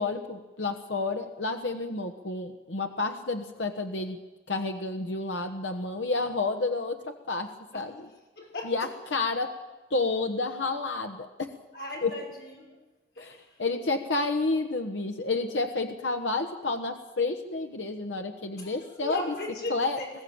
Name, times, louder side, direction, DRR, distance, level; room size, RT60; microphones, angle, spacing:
voice 1, 0.0-4.2 4.5-7.5 7.7-7.9 8.6-9.5 9.9-11.5 12.0-12.1 13.2-19.2 19.7-20.0, left 3 dB, 90° left, 4 dB, 1.3 m, -30 dB
voice 2, 8.4-8.9 11.7-12.8 13.1-13.6 18.5-20.1, left 2 dB, 60° left, -1 dB, 5.6 m, -38 dB
21.0 x 15.0 x 8.8 m, 1.1 s
head